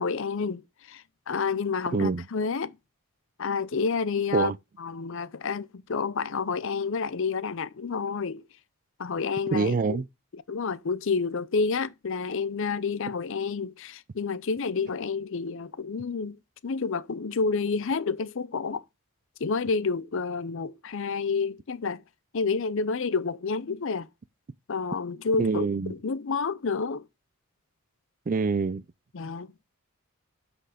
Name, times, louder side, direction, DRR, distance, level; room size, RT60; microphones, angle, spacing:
voice 1, 0.0-2.8 3.4-4.5 4.8-8.4 9.0-10.0 10.3-16.4 16.6-18.8 19.4-22.0 22.3-24.1 24.7-27.1 29.1-29.5, left 4 dB, 60° left, 0.5 m, -29 dB
voice 2, 1.9-2.2 4.3-4.6 9.5-10.0 25.4-25.9 28.3-28.8, right 4 dB, 35° right, 0.4 m, -25 dB
7.7 x 6.3 x 5.0 m
head